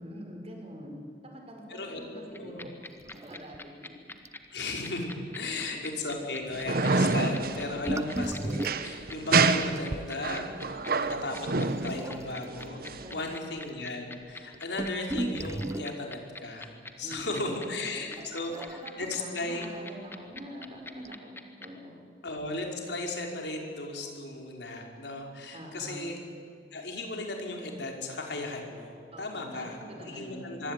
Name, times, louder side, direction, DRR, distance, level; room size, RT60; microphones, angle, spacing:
voice 1, 0.0-2.8 3.2-4.1 5.4-5.7 6.1-6.2 7.6-8.0 13.0-13.5 17.0-17.5 18.1-18.2 18.5-22.1 25.5-26.0 29.1-30.7, equal, 35° right, 2 dB, 5.6 m, -45 dB
voice 2, 1.7-2.7 4.5-10.6 10.9-12.8 13.1-19.7 22.2-26.2 26.7-30.7, left 2 dB, 75° left, 1 dB, 4.9 m, -36 dB
sound 1, 2.3-21.7, left 2 dB, 15° left, 1.7 m, -43 dB
sound 2, 3.0-3.6 3.9-4.0 4.2-4.5 5.0-5.1 7.5-10.1 11.8-12.5 13.3-13.4 13.6-13.7 14.3-16.0 18.2-19.1 20.4-20.5 21.0-21.1, right 1 dB, 15° right, 0.5 m, -35 dB
sound 3, 6.5-13.3, right 3 dB, 55° right, 1.2 m, -28 dB
24.0 x 24.0 x 9.2 m, 2.3 s
head